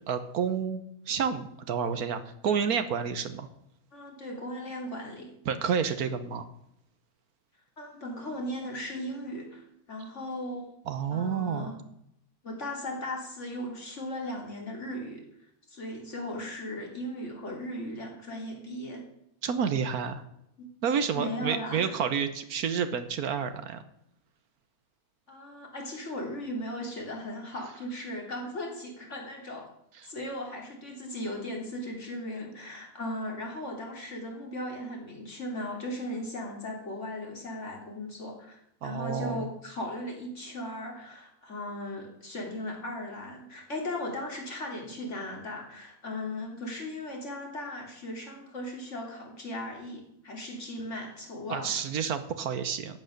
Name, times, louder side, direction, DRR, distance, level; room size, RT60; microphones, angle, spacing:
voice 1, 0.1-3.5 5.4-6.5 10.9-11.7 19.4-20.2 20.8-23.8 30.0-30.1 38.8-39.5 51.5-53.0, right 7 dB, 80° right, 10 dB, 1.4 m, -30 dB
voice 2, 3.9-5.3 7.8-10.7 11.1-11.8 12.4-15.2 15.7-19.0 20.6-20.7 21.0-22.0 25.3-29.7 30.0-51.8, left 1 dB, 50° left, 1 dB, 3.5 m, -37 dB
14.0 x 9.1 x 6.5 m, 0.79 s
omnidirectional pair, 1.6 m